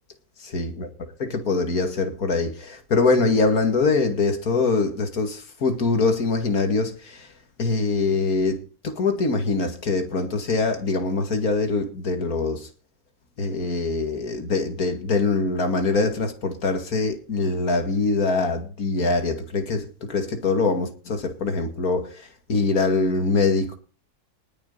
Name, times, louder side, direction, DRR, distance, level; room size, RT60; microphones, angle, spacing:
voice 1, 0.4-0.9 1.2-7.3 7.6-12.7 13.4-23.7, left 3 dB, 70° left, 2.6 m, -23 dB
19.5 x 6.7 x 5.5 m
omnidirectional pair, 1.6 m